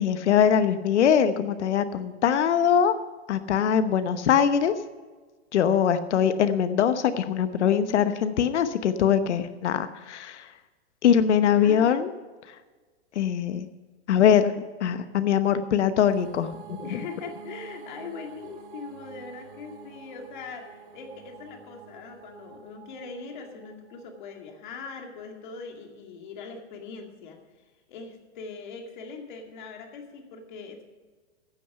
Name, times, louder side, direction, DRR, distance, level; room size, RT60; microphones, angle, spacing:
voice 1, 0.0-2.9 3.3-4.7 5.5-10.4 11.0-12.1 13.2-13.7 14.1-17.0, left 8 dB, 80° left, 10 dB, 1.0 m, -22 dB
voice 2, 11.5-12.2 16.8-27.4 27.9-30.8, left 5 dB, 45° left, 3 dB, 2.3 m, -41 dB
sound 1, 16.1-24.8, right 5 dB, 50° right, 1.8 m, -47 dB
15.5 x 8.7 x 5.8 m, 1.4 s
supercardioid pair, 180°, 34 cm